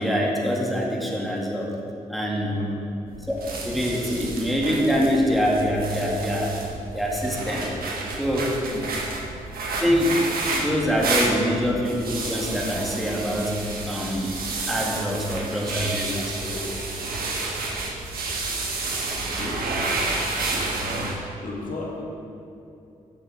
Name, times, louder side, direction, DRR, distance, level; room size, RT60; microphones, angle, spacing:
voice 1, 0.0-1.8 2.1-2.6 3.3-3.4 3.6-6.6 6.9-7.7 8.2-8.6 9.8-13.6 13.8-14.3 14.7-16.7 17.1-17.2, equal, ahead, -3 dB, 2.2 m, -25 dB
sound 1, 3.1-21.2, right 3 dB, 70° right, 1.4 m, -30 dB
voice 2, 21.4-22.0, left 3 dB, 55° left, -3 dB, 2.0 m, -34 dB
8.3 x 6.5 x 5.2 m, 2.7 s
hypercardioid pair, 40°, 16 cm